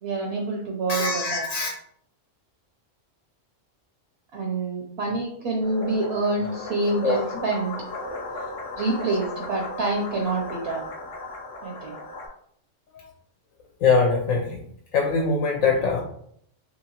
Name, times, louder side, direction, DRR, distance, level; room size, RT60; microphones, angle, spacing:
voice 1, 0.0-1.4 4.3-7.7 8.8-10.8 11.6-12.0, right 2 dB, 65° right, 0 dB, 0.7 m, -27 dB
voice 2, 0.9-1.7 7.0-7.3 13.8-14.6 14.9-16.0, left 4 dB, 90° left, 0 dB, 1.0 m, -22 dB
sound 1, 5.6-12.3, left 2 dB, 50° left, 0.6 m, -36 dB
2.8 x 2.8 x 2.8 m, 0.66 s
omnidirectional pair, 1.3 m